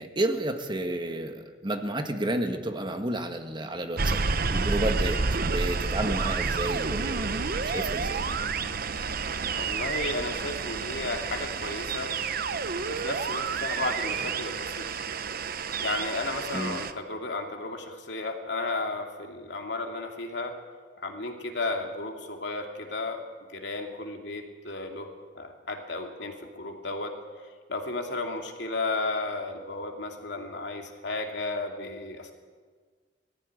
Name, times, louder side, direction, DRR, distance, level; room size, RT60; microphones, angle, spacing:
voice 1, 0.0-4.2 4.5-5.2 5.4-8.2 16.5-16.8, right 1 dB, 25° right, 6 dB, 1.5 m, -31 dB
sound 1, 4.0-16.9, right 4 dB, 55° right, 0.9 m, -30 dB
voice 2, 9.6-12.1 12.9-14.8 15.8-20.5 21.0-23.2 23.5-25.1 25.3-27.1 27.7-32.3, left 2 dB, 80° left, 3 dB, 2.7 m, -33 dB
19.0 x 14.5 x 9.8 m, 1.5 s
head